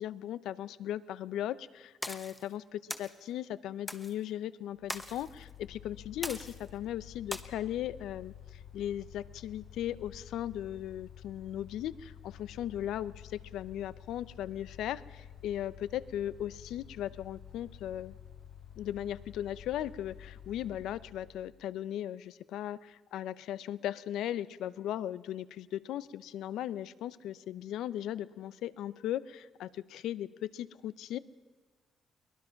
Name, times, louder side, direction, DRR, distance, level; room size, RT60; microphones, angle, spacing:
voice 1, 0.0-18.2 18.8-31.2, left 11 dB, 90° left, 17 dB, 0.6 m, -37 dB
sound 1, 2.0-2.4 2.9-3.1 3.9-4.1 4.9-5.3 6.2-6.7 7.3-7.4, left 1 dB, 5° left, 1.2 m, -39 dB
Mechanical fan, 4.8-21.6, left 9 dB, 45° left, 0.7 m, -51 dB
23.0 x 19.0 x 5.8 m, 1.4 s
cardioid pair, 120°, 0 cm